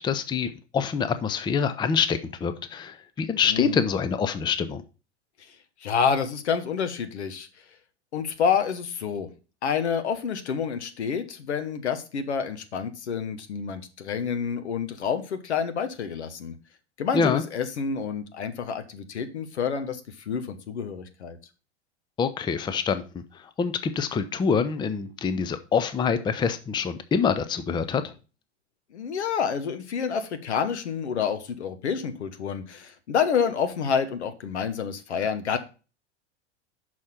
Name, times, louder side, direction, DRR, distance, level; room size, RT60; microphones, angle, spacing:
voice 1, 0.0-4.8 17.1-17.4 22.2-28.1, left 6 dB, 15° left, 11 dB, 0.5 m, -26 dB
voice 2, 3.5-3.9 5.8-7.5 8.1-9.3 9.6-16.5 17.0-20.0 20.3-21.4 28.9-35.6, left 6 dB, 75° left, 9 dB, 1.1 m, -28 dB
6.3 x 4.3 x 5.7 m, 0.33 s
figure-of-eight pair, 90°, 34 cm